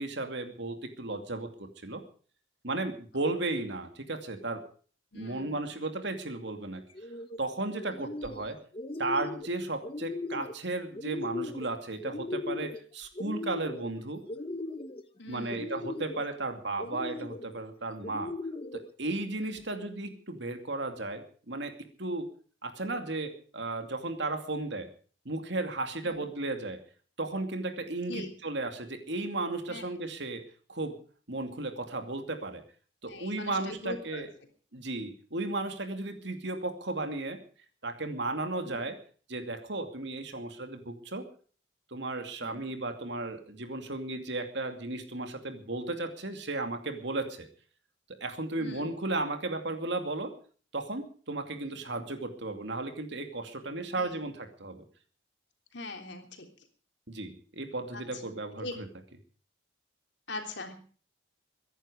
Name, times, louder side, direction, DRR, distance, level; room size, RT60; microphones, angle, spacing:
voice 1, 0.0-1.5 1.8-2.0 2.6-4.6 5.1-6.8 7.4-8.6 9.0-14.2 15.3-18.3 19.0-21.7 22.0-22.3 22.6-24.9 25.2-26.8 27.2-30.4 30.7-31.0 31.3-32.6 33.0-34.3 34.7-37.4 37.8-39.0 39.3-41.2 41.9-47.5 48.2-50.3 50.7-54.8 57.1-58.9, right 2 dB, 60° right, 6 dB, 2.6 m, -34 dB
voice 2, 5.1-5.7 7.8-8.0 15.2-15.6 19.4-19.6 26.0-26.2 28.1-28.3 29.7-29.8 33.0-34.2 38.6-38.8 42.4-42.6 48.6-48.9 54.0-54.2 55.7-56.5 57.9-58.2 58.6-58.7 60.3-60.7, left 2 dB, 65° left, 4 dB, 3.4 m, -42 dB
sound 1, 6.9-7.4 7.8-8.5 8.7-9.5 9.8-10.5 10.9-11.7 12.0-12.8 13.1-13.9 14.3-15.0 15.5-16.2 16.8-17.5 18.0-18.8, left 2 dB, 30° left, 1.0 m, -38 dB
23.0 x 11.0 x 5.0 m, 0.43 s
head